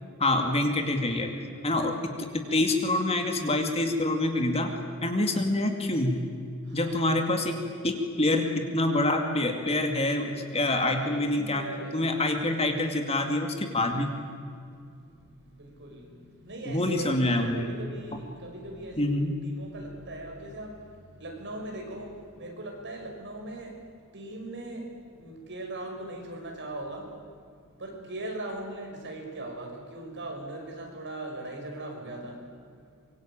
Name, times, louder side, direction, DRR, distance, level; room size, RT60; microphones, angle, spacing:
voice 1, 0.2-1.3 1.6-1.9 2.2-4.7 5.0-6.2 6.7-7.6 7.8-11.7 11.9-14.1 16.7-17.7 19.0-19.3, left 2 dB, 25° left, 4 dB, 2.4 m, -26 dB
voice 2, 1.5-1.9 5.1-5.3 6.6-7.1 10.5-12.0 14.5-27.2 27.5-32.8, right 1 dB, 55° right, 1 dB, 6.0 m, -40 dB
25.0 x 23.0 x 8.8 m, 2.3 s
head